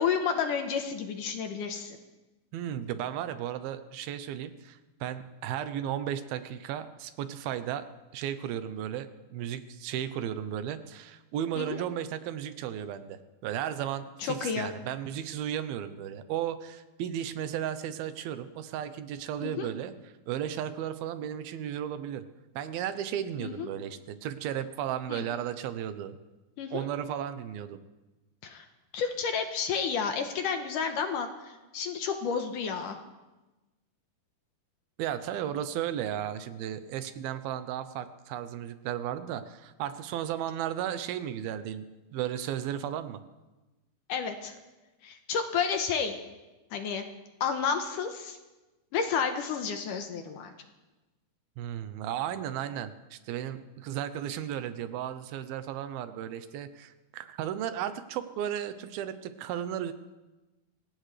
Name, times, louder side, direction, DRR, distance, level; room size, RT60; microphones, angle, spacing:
voice 1, 0.0-2.0 11.6-11.7 14.2-14.7 19.4-19.7 23.4-23.7 25.1-25.2 26.6-26.9 28.4-28.7 28.9-33.0 44.1-44.5 45.0-46.2 46.7-47.1 47.4-48.4 48.9-50.5, left 6 dB, 70° left, 6 dB, 2.3 m, -31 dB
voice 2, 2.5-7.8 8.1-22.2 22.6-26.2 26.7-27.8 35.0-41.9 42.1-43.2 51.6-59.9, right 10 dB, 80° right, 11 dB, 2.6 m, -34 dB
25.5 x 16.5 x 3.3 m, 1.1 s
omnidirectional pair, 4.4 m